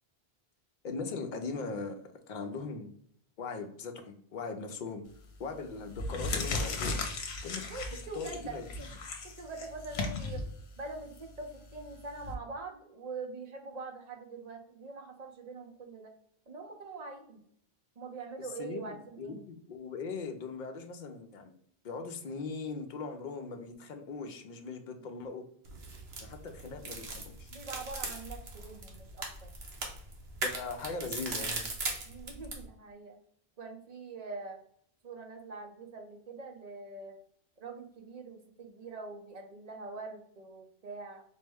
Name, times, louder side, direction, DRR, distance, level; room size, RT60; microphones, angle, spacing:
voice 1, 0.8-2.9 3.4-5.1 5.4-7.0 7.4-7.6 8.1-8.9 18.4-21.5 21.8-25.4 26.2-27.5 30.4-31.7, left 4 dB, 55° left, 5 dB, 0.6 m, -40 dB
sound 1, 5.1-5.4 5.8-12.3, left 3 dB, 75° left, 0.9 m, -37 dB
voice 2, 7.7-8.6 9.2-10.4 10.8-16.1 16.5-17.4 18.0-19.4 24.9-25.0 27.5-29.5 32.0-33.2 33.6-34.6 35.0-37.1 37.6-41.2, right 3 dB, 45° right, 3 dB, 0.7 m, -44 dB
sound 2, 25.7-32.6, right 3 dB, 75° right, 1.1 m, -39 dB
4.4 x 2.1 x 3.4 m, 0.65 s
omnidirectional pair, 1.1 m